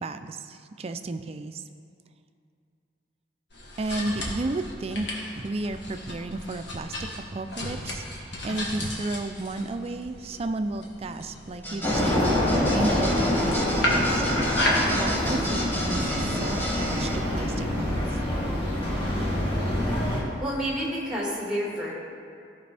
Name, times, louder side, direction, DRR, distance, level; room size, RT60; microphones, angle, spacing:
voice 1, 0.0-1.6 3.8-5.1 5.3-12.3 12.7-14.3 14.5-18.2, right 2 dB, 35° right, 8 dB, 0.4 m, -33 dB
sound 1, 3.5-14.9, left 1 dB, 75° left, 1.5 m, -33 dB
sound 2, 11.6-17.1, equal, 10° left, 1.3 m, -33 dB
sound 3, 11.8-20.2, left 1 dB, 30° left, 1.8 m, -26 dB
voice 2, 20.4-21.9, equal, 5° right, -5 dB, 2.0 m, -29 dB
14.0 x 5.2 x 3.4 m, 2.4 s
head